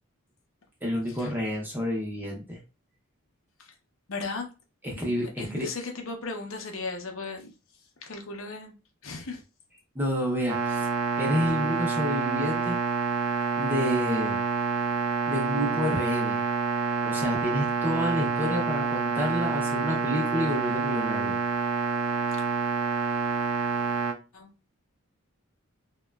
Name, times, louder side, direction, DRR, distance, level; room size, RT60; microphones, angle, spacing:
voice 1, 0.8-2.6 4.8-5.7 9.9-10.9 11.2-12.8 13.6-14.4 15.3-16.4 17.0-21.4, equal, 10° right, 0.6 m, -29 dB
voice 2, 4.1-4.5 5.0-7.5 8.0-8.7 9.0-9.4 24.3-24.5, left 3 dB, 70° left, 0.6 m, -36 dB
sound 1, 10.5-24.1, right 5 dB, 75° right, 0.5 m, -28 dB
2.8 x 2.2 x 2.2 m
head